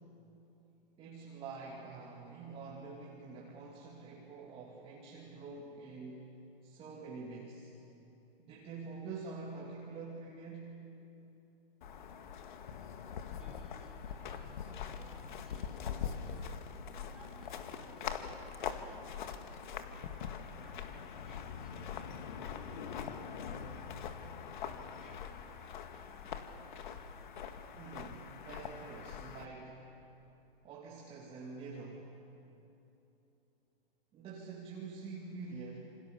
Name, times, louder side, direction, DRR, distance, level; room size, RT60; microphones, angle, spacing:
voice 1, 1.0-6.3 6.6-7.7 8.4-10.8 27.8-29.9 30.6-32.1 34.1-35.9, right 4 dB, 20° right, -4 dB, 2.9 m, -46 dB
sound 1, 11.8-29.5, left 7 dB, 55° left, 1.9 m, -43 dB
voice 2, 13.2-20.1 20.6-23.8 24.6-25.4 25.8-26.5, equal, ahead, -6 dB, 5.1 m, -60 dB
27.5 x 26.5 x 6.9 m, 3.0 s
hypercardioid pair, 140°, 30 cm